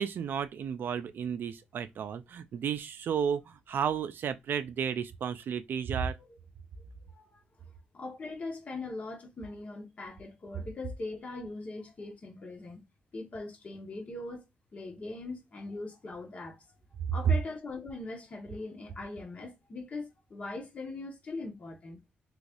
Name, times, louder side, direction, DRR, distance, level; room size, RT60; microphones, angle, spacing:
voice 1, 0.0-6.2, right 7 dB, 60° right, 0.4 m, -33 dB
voice 2, 7.1-7.6 7.9-12.8 13.1-14.4 14.7-16.6 17.1-22.0, left 3 dB, 40° left, 1.2 m, -41 dB
3.2 x 3.1 x 2.5 m
cardioid pair, 105°, 4 cm